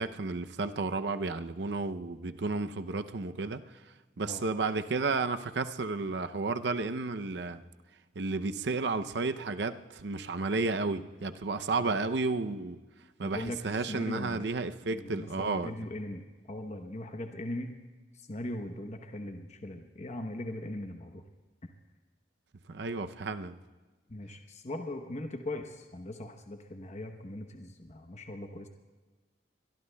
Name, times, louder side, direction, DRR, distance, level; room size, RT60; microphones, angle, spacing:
voice 1, 0.0-3.6 4.2-7.6 8.2-12.8 13.2-15.7 22.7-23.6, right 3 dB, 75° right, 9 dB, 0.6 m, -32 dB
voice 2, 13.2-13.6 13.9-14.5 14.9-17.8 18.1-21.2 24.1-28.7, left 1 dB, 40° left, 5 dB, 0.9 m, -39 dB
23.0 x 22.0 x 2.3 m, 1.3 s
head